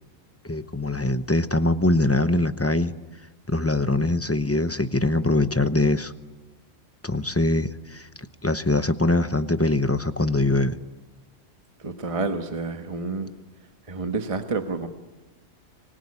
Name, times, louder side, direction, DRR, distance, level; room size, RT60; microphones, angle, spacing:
voice 1, 0.4-2.9 3.5-6.1 7.0-8.1 8.4-10.8, left 2 dB, 15° left, 11 dB, 0.7 m, -23 dB
voice 2, 11.8-13.3 13.9-14.9, right 3 dB, 25° right, 6 dB, 1.4 m, -29 dB
25.5 x 20.5 x 9.8 m, 1.2 s
omnidirectional pair, 1.3 m